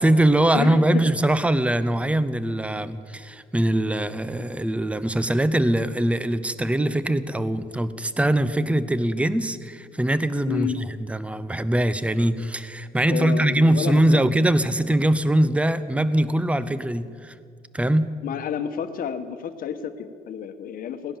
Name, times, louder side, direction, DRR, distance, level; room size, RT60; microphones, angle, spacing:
voice 1, 0.0-17.3 17.7-18.1, right 1 dB, 5° right, 14 dB, 0.7 m, -22 dB
voice 2, 0.5-1.0 10.5-10.8 13.1-14.2 18.2-21.2, left 8 dB, 55° left, 10 dB, 1.2 m, -30 dB
17.5 x 10.5 x 7.4 m, 2.1 s
cardioid pair, 110°, 17 cm